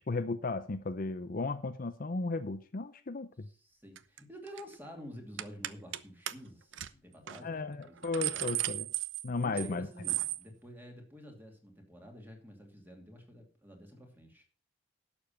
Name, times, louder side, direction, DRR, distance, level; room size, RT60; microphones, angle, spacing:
voice 1, 0.1-3.5 7.4-8.9 9.2-9.9, left 3 dB, 45° left, 10 dB, 0.6 m, -35 dB
voice 2, 3.4-8.6 9.4-14.4, equal, 10° right, 3 dB, 2.6 m, -50 dB
sound 1, 4.0-4.2 4.5-4.7 5.4-6.0 6.3-6.4 6.7-6.9 7.3-7.4 7.8-9.7 10.0-10.4, right 14 dB, 70° right, 0.6 m, -35 dB
12.0 x 7.1 x 5.6 m, 0.38 s
head